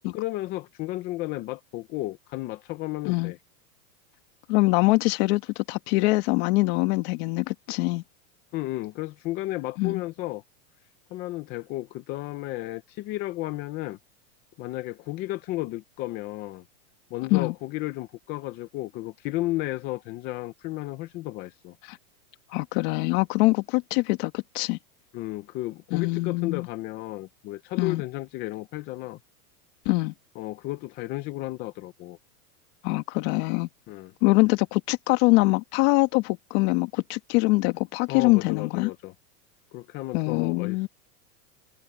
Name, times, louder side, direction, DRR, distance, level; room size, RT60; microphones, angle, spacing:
voice 1, 0.1-3.4 8.5-10.4 11.1-14.0 14.6-16.6 17.1-21.7 25.1-29.2 30.4-32.2 33.9-34.1 38.1-39.1 39.7-40.9, left 17 dB, 20° left, 0.5 m, -33 dB
voice 2, 4.5-8.0 9.8-10.0 17.3-17.5 21.9-22.0 22.5-24.8 25.9-26.7 27.8-28.0 29.9-30.1 32.8-33.7 34.2-38.9 40.1-40.9, left 23 dB, 45° left, 1.8 m, -23 dB
supercardioid pair, 155°, 45 cm